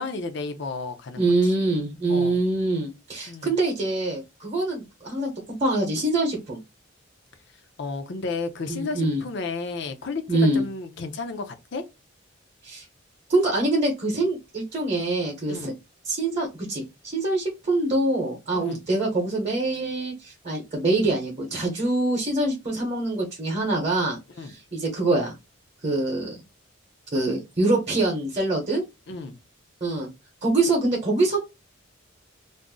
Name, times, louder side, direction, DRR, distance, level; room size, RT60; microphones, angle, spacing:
voice 1, 0.0-1.2 2.1-2.4 3.3-3.5 7.8-11.8 15.5-15.7 18.5-18.8 24.4-24.5 29.1-29.4, left 3 dB, 55° left, 0.5 m, -32 dB
voice 2, 1.1-5.3 5.6-6.6 8.7-9.2 10.3-10.6 12.6-12.8 13.3-15.7 16.0-25.3 25.8-26.4 27.1-28.8 29.8-30.1 30.4-31.4, right 2 dB, 35° right, 0.8 m, -24 dB
2.5 x 2.0 x 3.6 m
head